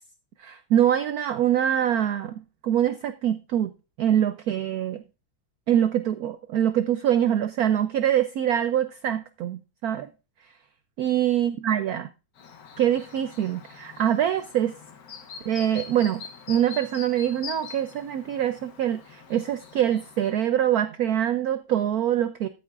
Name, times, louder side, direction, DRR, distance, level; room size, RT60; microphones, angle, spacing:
voice 1, 0.4-3.7 4.0-5.0 5.7-10.1 11.0-12.1 12.8-14.8 15.5-22.5, right 10 dB, 70° right, 0.9 m, -24 dB
Chirp tweet, 12.4-20.3, left 6 dB, 55° left, 1.3 m, -44 dB
13.5 x 7.9 x 2.5 m
omnidirectional pair, 2.1 m